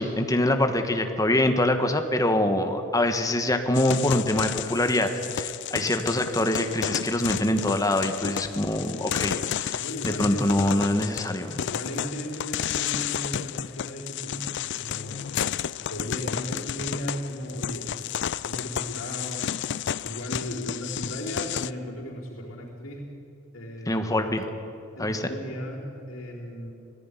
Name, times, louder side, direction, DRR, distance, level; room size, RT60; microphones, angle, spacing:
voice 1, 0.0-11.6 23.9-24.5 25.0-25.3, left 1 dB, 15° left, 7 dB, 1.4 m, -24 dB
sound 1, 3.7-21.7, left 9 dB, 60° left, 0.4 m, -32 dB
voice 2, 5.8-6.3 9.8-10.5 11.7-15.2 15.9-18.0 18.4-19.6 20.0-23.1 23.5-24.0 25.0-26.7, equal, 85° left, -5 dB, 4.0 m, -36 dB
19.0 x 15.0 x 9.9 m, 2.6 s
head